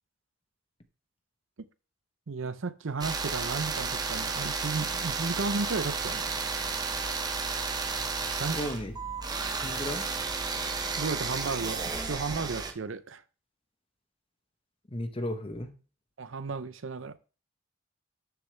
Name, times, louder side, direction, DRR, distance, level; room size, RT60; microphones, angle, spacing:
voice 1, 2.3-6.3 8.4-8.6 11.0-13.2 16.2-17.2, right 4 dB, 70° right, 14 dB, 0.6 m, -34 dB
sound 1, 3.0-12.7, right 4 dB, 20° right, 0.8 m, -32 dB
voice 2, 8.1-9.0 9.4-10.0 14.9-15.7, left 1 dB, 25° left, 8 dB, 1.0 m, -35 dB
12.0 x 6.9 x 3.3 m, 0.35 s
head